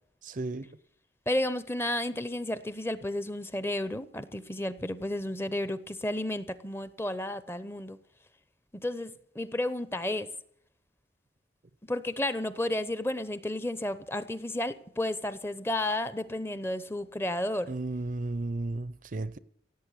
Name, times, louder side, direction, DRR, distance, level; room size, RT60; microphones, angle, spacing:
voice 1, 0.2-0.7 17.7-19.4, right 2 dB, 45° right, 0.6 m, -34 dB
voice 2, 1.3-8.0 8.7-10.3 11.9-17.7, left 1 dB, 15° left, 0.7 m, -32 dB
17.0 x 8.5 x 8.2 m
head